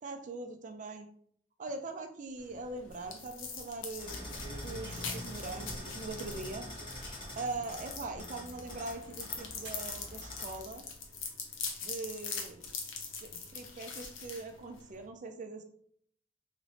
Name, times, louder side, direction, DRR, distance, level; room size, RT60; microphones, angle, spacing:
voice 1, 0.0-1.1 1.6-4.3 4.6-6.7 7.4-10.8 11.8-12.7 13.2-15.6, right 3 dB, 40° right, 6 dB, 0.4 m, -42 dB
sound 1, 2.4-15.1, left 5 dB, 90° left, 0.7 m, -43 dB
sound 2, 2.5-2.9 4.2-7.5 8.1-8.2 9.6-9.9 10.7-11.2, right 2 dB, 65° right, 1.1 m, -49 dB
sound 3, 4.0-10.6, left 1 dB, 25° left, 1.2 m, -45 dB
3.1 x 3.0 x 2.8 m, 0.64 s
head